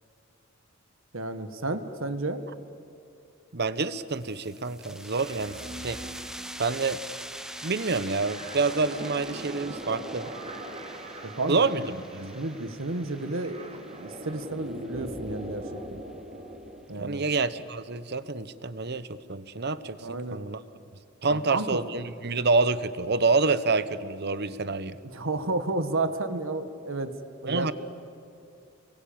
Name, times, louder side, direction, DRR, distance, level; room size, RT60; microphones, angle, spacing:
voice 1, 1.1-2.4 11.2-11.9 12.3-16.0 16.9-17.2 20.0-20.4 21.3-21.9 25.0-27.2 27.4-27.7, right 2 dB, 70° right, 9 dB, 1.7 m, -32 dB
voice 2, 3.5-5.6 5.8-6.0 6.6-7.0 7.6-10.3 11.5-12.4 16.9-20.0 20.3-20.6 21.2-25.0 27.4-27.7, right 3 dB, 55° right, 14 dB, 1.0 m, -27 dB
sound 1, 4.1-15.4, right 1 dB, 5° right, 1.0 m, -44 dB
sound 2, 5.1-16.9, right 1 dB, 30° right, 3.0 m, -41 dB
29.0 x 22.5 x 8.9 m, 2.6 s
head